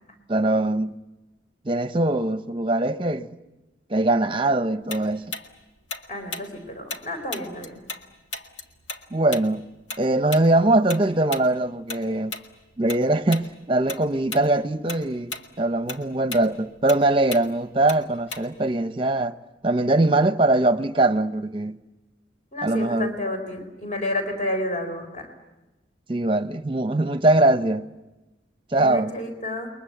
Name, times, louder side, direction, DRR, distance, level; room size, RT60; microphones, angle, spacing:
voice 1, 0.3-1.0 1.6-3.3 3.9-5.3 9.1-9.7 10.0-12.4 12.8-19.4 19.6-21.8 22.6-23.1 26.1-27.9 28.7-29.2, right 2 dB, 25° right, 0.8 m, -22 dB
Tick-tock, 4.9-8.0 8.3-13.0 13.3-13.5 13.9-14.5 14.8-18.7, left 3 dB, 75° left, 1.9 m, -36 dB
voice 2, 6.1-7.7 22.5-25.3 28.7-29.7, left 1 dB, 40° left, 4.2 m, -30 dB
29.0 x 22.5 x 8.0 m
head